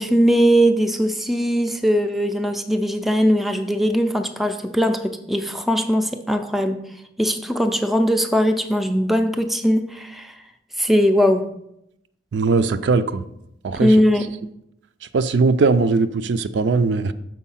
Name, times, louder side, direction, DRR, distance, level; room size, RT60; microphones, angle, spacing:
voice 1, 0.0-6.8 7.2-10.3 10.8-11.5 13.8-14.3, equal, ahead, 6 dB, 0.3 m, -20 dB
voice 2, 12.3-13.2 13.6-14.0 15.1-17.1, right 4 dB, 75° right, 11 dB, 0.4 m, -19 dB
6.3 x 4.5 x 5.6 m, 0.80 s
head